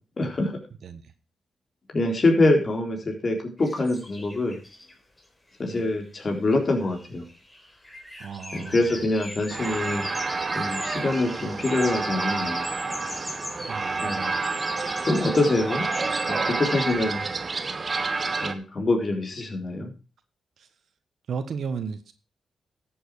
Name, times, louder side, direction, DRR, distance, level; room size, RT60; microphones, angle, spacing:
voice 1, 0.2-0.5 1.9-4.6 5.6-7.3 8.5-10.1 10.6-12.7 14.0-14.3 15.0-15.9 16.3-17.2 18.4-19.9, left 2 dB, 40° left, 2 dB, 3.8 m, -25 dB
sound 1, 3.6-5.2 5.7-5.8 6.1-6.2 6.5-16.9, left 1 dB, 20° left, 4.0 m, -39 dB
voice 2, 8.2-8.8 13.7-14.4 21.3-22.1, right 6 dB, 70° right, 10 dB, 1.3 m, -34 dB
sound 2, 9.5-18.5, right 4 dB, 40° right, 1.3 m, -29 dB
13.0 x 7.8 x 4.8 m, 0.33 s
cardioid pair, 70°, 0 cm